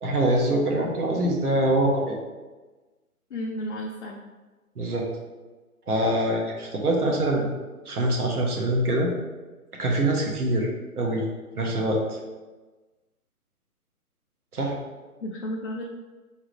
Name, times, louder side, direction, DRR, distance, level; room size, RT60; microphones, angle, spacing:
voice 1, 0.0-2.2 4.8-5.1 5.9-7.5 7.8-9.1 9.8-10.7 10.9-11.2 11.6-12.0 14.5-14.8, right 1 dB, 75° right, -1 dB, 1.3 m, -24 dB
voice 2, 3.3-4.2 15.2-15.8, left 1 dB, 50° left, -2 dB, 0.6 m, -32 dB
4.3 x 3.6 x 3.2 m, 1.2 s
hypercardioid pair, 155°, 46 cm